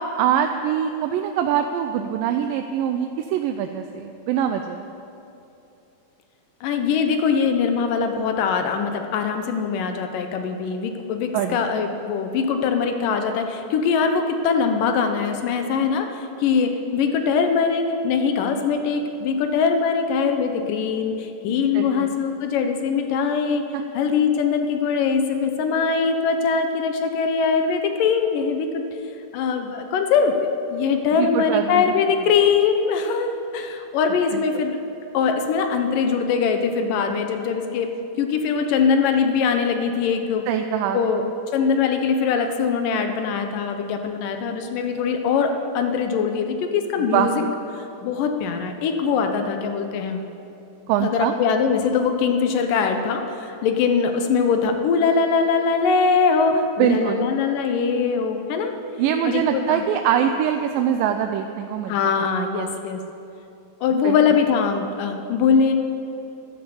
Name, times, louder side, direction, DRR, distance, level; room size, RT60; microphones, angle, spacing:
voice 1, 0.0-4.8 11.3-11.6 21.7-22.1 23.7-23.8 31.1-31.9 34.3-34.4 40.5-41.0 47.0-47.5 50.9-51.3 56.8-57.3 59.0-62.0 62.4-62.7 64.0-64.2, right 9 dB, 85° right, 6 dB, 2.3 m, -23 dB
voice 2, 6.6-23.6 23.9-28.8 29.3-34.8 35.1-37.9 38.2-40.4 40.9-41.2 41.5-47.4 47.8-50.2 51.0-58.8 59.2-59.8 61.9-63.0 63.8-65.7, left 5 dB, 80° left, 6 dB, 2.5 m, -22 dB
12.0 x 12.0 x 7.0 m, 2.8 s
omnidirectional pair, 3.9 m